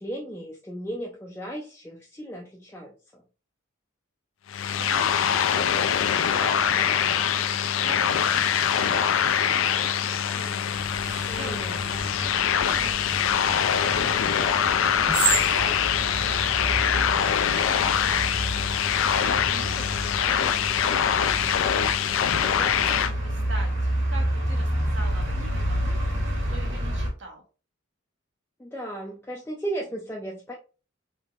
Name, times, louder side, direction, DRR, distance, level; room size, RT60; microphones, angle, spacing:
voice 1, 0.0-3.2 11.3-11.8 22.2-22.7 28.6-30.6, right 1 dB, 10° left, -2 dB, 0.4 m, -36 dB
sound 1, 4.5-23.1, left 8 dB, 80° left, 0.4 m, -24 dB
voice 2, 4.8-14.6 15.5-21.6 22.3-27.4, right 2 dB, 65° right, 2 dB, 1.0 m, -43 dB
sound 2, 10.7-27.1, right 1 dB, 85° right, 1.5 m, -30 dB
3.4 x 2.9 x 2.4 m, 0.34 s
head